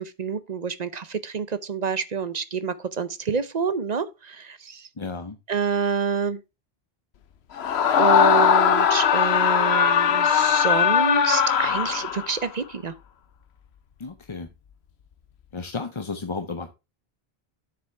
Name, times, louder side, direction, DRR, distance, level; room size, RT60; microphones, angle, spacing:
voice 1, 0.0-4.9 5.5-6.4 8.0-12.9, right 6 dB, 45° right, 0.8 m, -27 dB
voice 2, 5.0-5.4 14.0-14.5 15.5-16.7, left 4 dB, 30° left, 0.7 m, -33 dB
Screaming, 7.6-12.4, left 8 dB, 80° left, 1.1 m, -20 dB
9.6 x 7.2 x 3.3 m
omnidirectional pair, 1.1 m